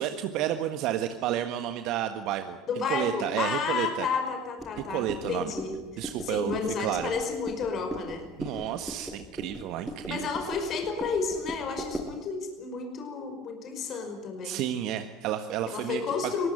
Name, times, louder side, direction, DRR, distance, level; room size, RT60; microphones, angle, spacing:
voice 1, 0.0-2.6 2.9-4.1 4.9-5.5 6.0-7.1 8.4-10.3 14.4-16.3, right 11 dB, 55° right, 8 dB, 1.5 m, -31 dB
voice 2, 2.7-8.3 10.1-14.6 15.7-16.5, left 5 dB, 45° left, 5 dB, 5.3 m, -31 dB
sound 1, 4.6-12.2, right 1 dB, 10° right, 5.9 m, -39 dB
24.0 x 19.5 x 9.2 m, 1.1 s
hypercardioid pair, 75°, 0 cm